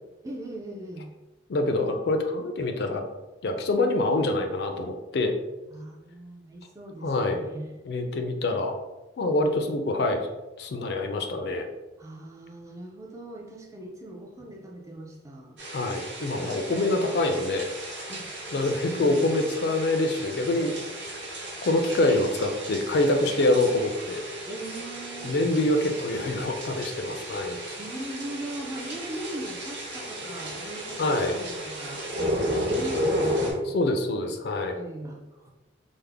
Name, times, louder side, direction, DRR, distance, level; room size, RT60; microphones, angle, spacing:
voice 1, 0.2-1.1 5.7-7.7 12.0-15.6 18.1-19.4 24.5-25.3 27.8-32.0 32.6-33.5 34.7-35.5, right 1 dB, 15° right, -1 dB, 0.4 m, -39 dB
voice 2, 1.5-3.0 3.4-5.3 7.0-7.4 7.8-8.8 9.2-10.3 10.6-11.7 15.7-17.7 18.5-20.7 21.6-24.2 25.2-27.6 31.0-31.4 33.7-34.8, left 2 dB, 60° left, 5 dB, 0.4 m, -25 dB
sound 1, 15.6-33.5, equal, 65° right, 1.1 m, -34 dB
3.5 x 2.0 x 3.3 m, 1.1 s
head